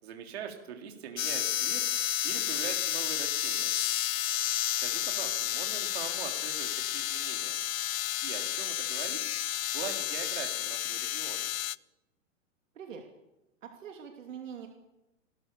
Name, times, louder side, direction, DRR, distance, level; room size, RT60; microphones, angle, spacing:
voice 1, 0.0-1.8 2.2-3.7 4.8-7.6 8.2-9.2 9.7-11.5, right 8 dB, 50° right, 3 dB, 3.6 m, -42 dB
sound 1, 1.2-11.8, left 13 dB, 85° left, 0.6 m, -31 dB
voice 2, 13.6-14.7, right 7 dB, 70° right, 3 dB, 2.9 m, -43 dB
28.5 x 13.5 x 6.9 m, 0.95 s
hypercardioid pair, 170°, 40 cm